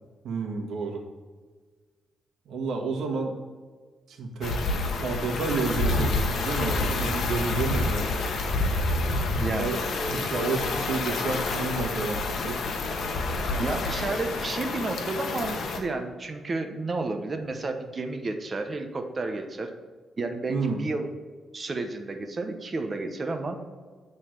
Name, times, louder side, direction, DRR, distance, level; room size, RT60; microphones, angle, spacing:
voice 1, 0.2-1.0 2.4-3.3 4.1-4.7 5.0-8.4 9.2-9.8 10.1-12.6 20.5-20.8, right 4 dB, 70° right, 0 dB, 1.7 m, -30 dB
sound 1, 4.4-15.8, left 3 dB, 60° left, 1.2 m, -28 dB
voice 2, 9.4-9.8 13.4-19.7 20.2-21.1 21.5-23.6, right 3 dB, 30° right, 6 dB, 1.0 m, -31 dB
sound 2, 9.9-14.9, left 1 dB, 5° right, 1.1 m, -42 dB
9.2 x 4.1 x 6.6 m, 1.5 s
cardioid pair, 110°, 0 cm